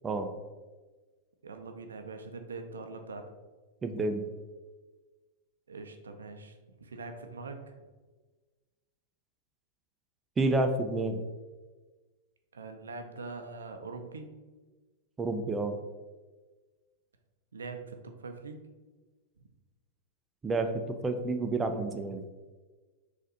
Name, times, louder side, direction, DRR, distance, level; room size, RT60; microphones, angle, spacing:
voice 1, 0.0-0.3 3.8-4.3 10.4-11.2 15.2-15.8 20.4-22.2, right 2 dB, 20° right, 6 dB, 0.4 m, -29 dB
voice 2, 1.4-3.3 5.7-7.6 12.5-14.3 17.5-18.6, right 3 dB, 80° right, 6 dB, 0.5 m, -43 dB
4.1 x 2.5 x 3.9 m, 1.3 s
hypercardioid pair, 100°, 0 cm